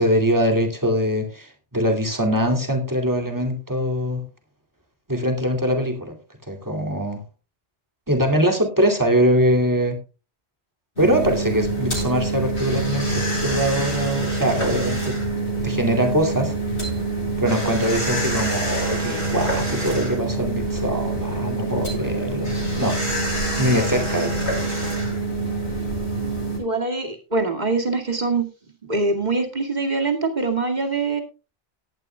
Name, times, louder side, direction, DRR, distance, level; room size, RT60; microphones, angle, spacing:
voice 1, 0.0-4.2 5.1-6.1 6.5-7.2 8.1-10.0 11.0-15.2 15.6-16.6 17.4-23.0 23.6-24.5, equal, 15° right, 3 dB, 2.5 m, -22 dB
sound 1, 11.0-26.6, right 2 dB, 80° left, 7.1 m, -25 dB
voice 2, 26.6-28.5 28.8-31.2, right 3 dB, 40° right, 3 dB, 2.3 m, -23 dB
18.0 x 11.5 x 2.3 m, 0.31 s
omnidirectional pair, 1.1 m